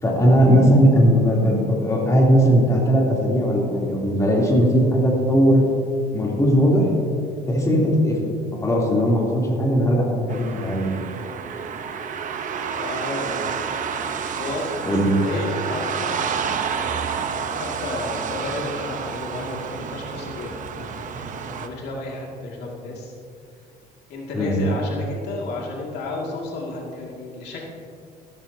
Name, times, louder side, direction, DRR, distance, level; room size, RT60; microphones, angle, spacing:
voice 1, 0.0-5.6 6.1-6.9 7.5-8.2 8.6-11.0 14.9-15.1 24.3-24.6, equal, 20° left, -3 dB, 3.1 m, -18 dB
sound 1, 10.3-21.7, right 6 dB, 50° right, 0.9 m, -29 dB
voice 2, 12.7-13.6 14.4-16.2 16.7-23.1 24.1-27.6, left 2 dB, 75° left, -2 dB, 2.3 m, -32 dB
14.5 x 13.0 x 2.8 m, 2.3 s
cardioid pair, 110°, 17 cm